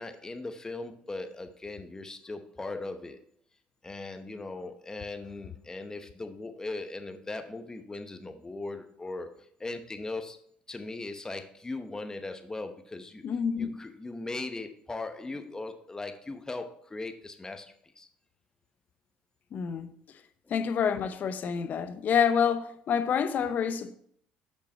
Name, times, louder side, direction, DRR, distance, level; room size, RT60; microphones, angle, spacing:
voice 1, 0.0-3.2 3.8-9.3 9.6-10.4 10.7-13.2 13.6-18.1, left 2 dB, 15° left, 0.9 m, -39 dB
voice 2, 13.2-13.8 19.5-19.9 20.5-23.9, left 7 dB, 50° left, 0.7 m, -27 dB
6.7 x 5.7 x 4.4 m
supercardioid pair, 80°, 4 cm